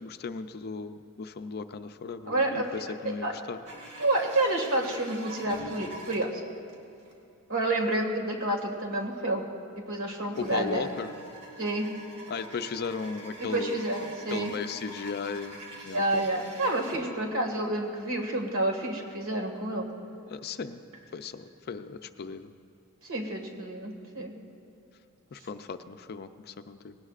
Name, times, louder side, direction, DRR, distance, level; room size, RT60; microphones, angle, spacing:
voice 1, 0.0-3.6 10.4-11.1 12.3-13.9 14.3-15.6 15.8-16.4 20.3-20.8 21.1-22.5 24.2-24.3 25.3-27.0, left 5 dB, 45° left, 9 dB, 0.5 m, -36 dB
voice 2, 2.3-3.3 4.0-6.4 7.5-9.4 9.9-10.9 11.6-11.9 13.4-14.5 15.9-19.9 23.1-24.3, right 1 dB, 65° right, 2 dB, 1.9 m, -29 dB
sound 1, 3.7-6.7 7.1-7.2 7.6-7.7 8.4-8.5 10.3-17.7 17.9-18.1 18.8-18.9 19.4-19.6 20.0-21.0 21.5-21.9 23.1-23.2 23.4-23.5, right 1 dB, 90° right, 2.2 m, -45 dB
19.5 x 17.5 x 2.5 m, 2.7 s
head